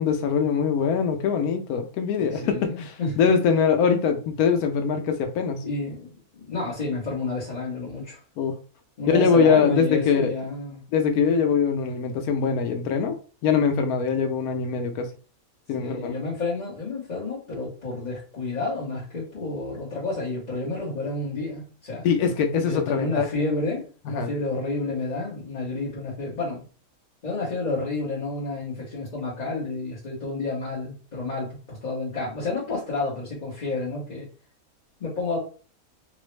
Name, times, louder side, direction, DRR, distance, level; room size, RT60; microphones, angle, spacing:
voice 1, 0.0-5.6 8.4-8.5 9.1-10.3 10.9-13.2 13.4-15.1 15.7-16.1 22.0-23.3 24.1-24.3, left 6 dB, 85° left, 6 dB, 1.1 m, -22 dB
voice 2, 2.2-3.3 5.6-8.2 9.0-10.8 15.7-22.0 22.6-26.6 27.2-34.3 35.0-35.4, left 3 dB, 35° left, -7 dB, 0.8 m, -30 dB
3.9 x 2.0 x 3.1 m, 0.39 s
omnidirectional pair, 1.5 m